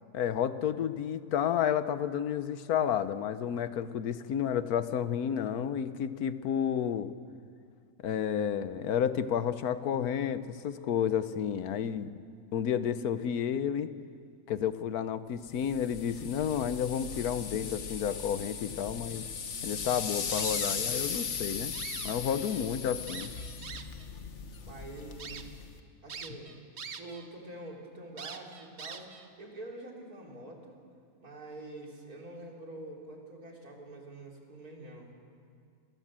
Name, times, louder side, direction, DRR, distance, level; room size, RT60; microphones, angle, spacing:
voice 1, 0.1-7.1 8.0-12.1 12.5-13.9 14.5-19.3 19.6-21.7 22.0-23.3, left 8 dB, 85° left, 13 dB, 1.4 m, -31 dB
sound 1, 15.5-25.8, left 6 dB, 55° left, 1.4 m, -38 dB
sound 2, 20.3-21.2 21.6-22.6 23.1-24.1 24.6-24.7 25.2-25.4 26.1-27.3 27.6-27.7 28.2-29.3, right 6 dB, 50° right, 1.3 m, -43 dB
voice 2, 24.6-25.7 26.0-26.5 27.0-30.8 31.2-35.1, right 2 dB, 85° right, -1 dB, 4.1 m, -46 dB
27.5 x 18.5 x 7.5 m, 2.3 s
omnidirectional pair, 1.5 m